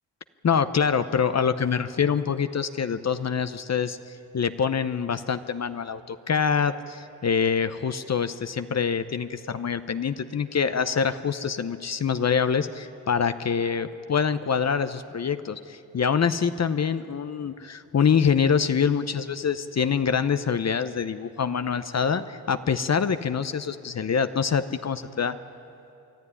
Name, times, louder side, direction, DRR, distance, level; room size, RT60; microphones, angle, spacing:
voice 1, 0.4-4.0 4.3-25.4, left 6 dB, 40° left, 11 dB, 0.8 m, -25 dB
24.5 x 13.0 x 9.7 m, 2.7 s
cardioid pair, 65°, 39 cm